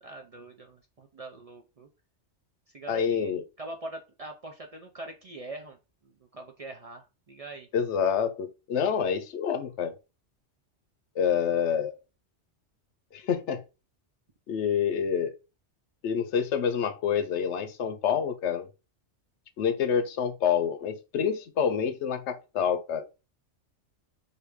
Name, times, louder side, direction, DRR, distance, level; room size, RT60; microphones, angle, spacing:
voice 1, 0.0-1.9 2.7-5.8 6.0-7.7, right 2 dB, 45° right, 0.5 m, -43 dB
voice 2, 2.9-3.4 7.7-9.9 11.2-11.9 13.1-13.6 14.5-15.3 16.0-18.7 19.6-23.1, left 7 dB, 85° left, 1.0 m, -27 dB
3.4 x 2.6 x 4.6 m
omnidirectional pair, 1.2 m